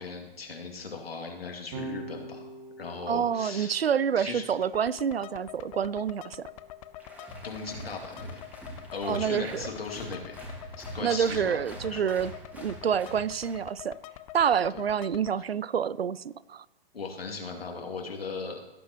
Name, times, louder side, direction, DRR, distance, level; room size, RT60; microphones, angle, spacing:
voice 1, 0.0-2.5 2.8-3.8 4.2-4.5 7.4-8.4 8.9-10.4 10.8-11.6 11.9-12.0 16.9-18.6, left 4 dB, 80° left, 1 dB, 2.6 m, -38 dB
Electric guitar / Bass guitar, 1.7-8.1, right 2 dB, 40° right, 1.9 m, -46 dB
voice 2, 3.1-6.5 9.0-9.6 11.0-12.3 12.6-14.0 14.3-16.6, right 8 dB, 85° right, 20 dB, 0.5 m, -28 dB
sound 1, 4.6-15.3, left 13 dB, 35° left, 0.6 m, -46 dB
Applause, 7.0-13.7, right 1 dB, 5° right, 2.4 m, -44 dB
17.0 x 9.6 x 3.0 m, 1.0 s
figure-of-eight pair, 115°, 30 cm